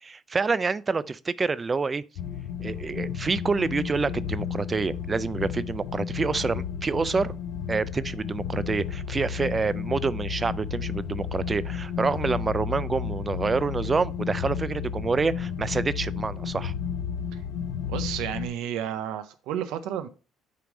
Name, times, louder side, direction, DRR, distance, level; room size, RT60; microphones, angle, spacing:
voice 1, 0.0-2.0 2.6-7.4 7.7-16.7, right 4 dB, 25° right, 0.3 m, -27 dB
sound 1, 2.2-18.5, left 7 dB, 85° left, 0.6 m, -32 dB
voice 2, 17.9-20.1, right 10 dB, 85° right, 0.5 m, -32 dB
6.7 x 3.2 x 5.1 m
cardioid pair, 120°, 0 cm